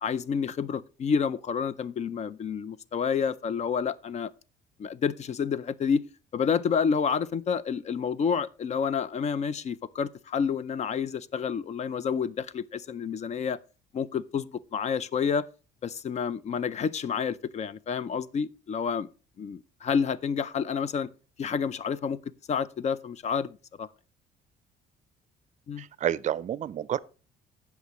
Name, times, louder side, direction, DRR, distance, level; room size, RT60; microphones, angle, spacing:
voice 1, 0.0-4.3 4.8-6.0 6.3-13.6 13.9-15.5 15.8-19.1 19.4-21.1 21.4-22.2 22.5-23.9 25.7-25.8, left 6 dB, 40° left, 0.5 m, -29 dB
voice 2, 25.8-27.0, right 10 dB, 45° right, 0.5 m, -29 dB
16.5 x 5.9 x 3.0 m
cardioid pair, 110°, 17 cm